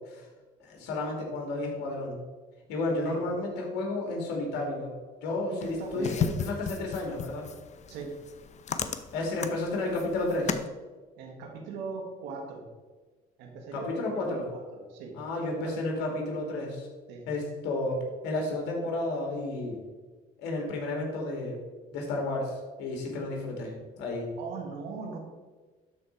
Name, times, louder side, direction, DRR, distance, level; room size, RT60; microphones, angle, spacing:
voice 1, 0.6-2.2 2.7-4.9 5.2-7.5 9.1-10.6 13.7-14.5 15.1-16.9 17.3-18.0 18.2-19.8 20.4-21.6 21.9-24.3, left 2 dB, 80° left, 1 dB, 2.2 m, -32 dB
voice 2, 5.5-6.3 7.9-8.2 11.2-12.7 13.4-15.2 15.5-15.8 17.1-17.3 24.4-25.2, right 4 dB, 85° right, 2 dB, 1.4 m, -40 dB
sound 1, 5.6-10.7, left 6 dB, 40° left, 0.7 m, -35 dB
12.0 x 4.4 x 4.4 m, 1.3 s
supercardioid pair, 85°, 17 cm